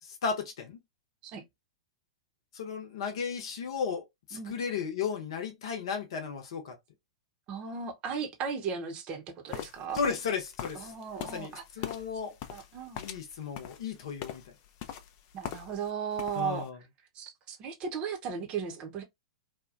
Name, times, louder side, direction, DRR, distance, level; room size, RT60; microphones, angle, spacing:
voice 1, 0.2-0.8 2.5-4.0 4.3-6.8 9.9-10.9 11.2-12.3 13.0-14.4 16.3-16.8, left 6 dB, 55° left, 0.8 m, -34 dB
voice 2, 7.5-10.0 10.7-11.9 12.5-13.0 15.3-16.7 17.1-19.0, right 6 dB, 35° right, 0.8 m, -36 dB
sound 1, 9.5-15.9 16.1-16.7, left 10 dB, 40° left, 0.5 m, -42 dB
2.9 x 2.2 x 2.4 m
figure-of-eight pair, 100°, 3 cm